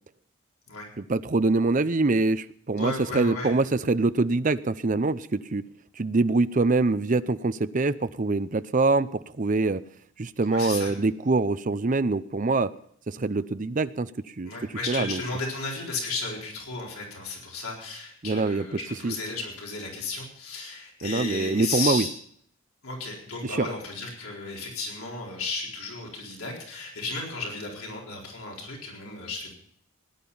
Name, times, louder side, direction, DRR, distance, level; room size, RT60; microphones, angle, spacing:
voice 1, 1.0-5.7 6.0-9.8 10.2-12.7 13.1-14.1 14.4-14.5 14.9-15.2 18.2-18.7 19.0-19.1 21.0-22.1 23.4-23.7, right 3 dB, 40° right, 13 dB, 0.5 m, -24 dB
voice 2, 2.8-3.5 10.5-10.9 14.4-22.1 22.8-29.5, left 3 dB, 85° left, -2 dB, 4.2 m, -34 dB
17.5 x 10.5 x 5.5 m, 0.65 s
head